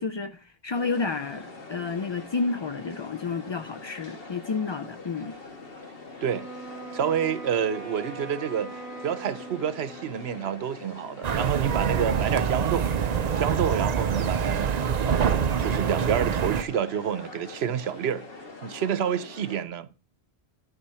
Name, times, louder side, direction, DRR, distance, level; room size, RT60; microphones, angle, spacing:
voice 1, 0.0-5.3, left 4 dB, 45° left, 0.3 m, -30 dB
sound 1, 0.7-19.6, left 3 dB, 65° left, 1.8 m, -44 dB
Wind instrument woodwind instrument, 6.2-10.4, right 3 dB, 20° right, 2.1 m, -42 dB
voice 2, 6.9-8.7 9.0-12.9 13.4-14.7 15.0-18.3 18.6-19.9, right 8 dB, 75° right, 1.0 m, -28 dB
sound 2, 11.2-16.6, right 7 dB, 50° right, 0.6 m, -25 dB
11.5 x 4.3 x 5.6 m
omnidirectional pair, 1.1 m